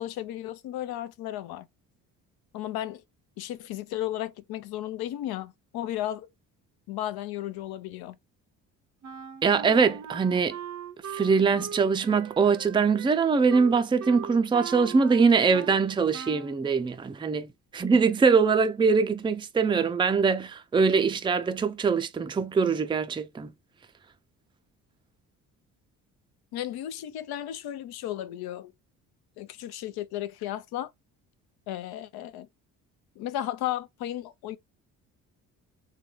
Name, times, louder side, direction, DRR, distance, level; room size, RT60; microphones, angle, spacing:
voice 1, 0.0-1.7 2.5-3.0 3.4-6.3 6.9-8.2 26.5-28.7 29.4-30.9 31.7-32.5 33.2-34.6, left 13 dB, 65° left, 0.6 m, -34 dB
Wind instrument woodwind instrument, 9.0-15.8 16.1-16.6, right 7 dB, 40° right, 0.7 m, -40 dB
voice 2, 9.4-10.6 11.1-23.5, right 5 dB, 10° right, 0.4 m, -23 dB
3.9 x 2.2 x 3.1 m
hypercardioid pair, 60°, 41 cm